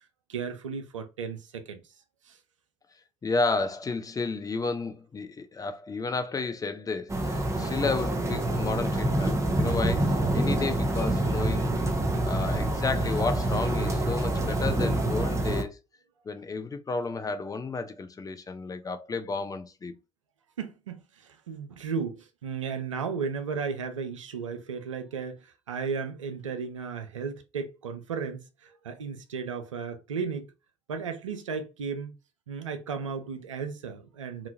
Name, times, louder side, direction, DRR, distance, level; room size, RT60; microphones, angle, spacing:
voice 1, 0.3-1.8 2.2-2.4 20.6-30.5 30.9-32.1 32.5-34.5, right 5 dB, 90° right, 0.4 m, -35 dB
voice 2, 3.2-11.7 12.2-15.8 16.3-19.9, left 4 dB, 25° left, 0.5 m, -32 dB
sound 1, 7.1-15.6, right 1 dB, 20° right, 0.8 m, -26 dB
2.8 x 2.4 x 2.6 m
figure-of-eight pair, 55°, 16 cm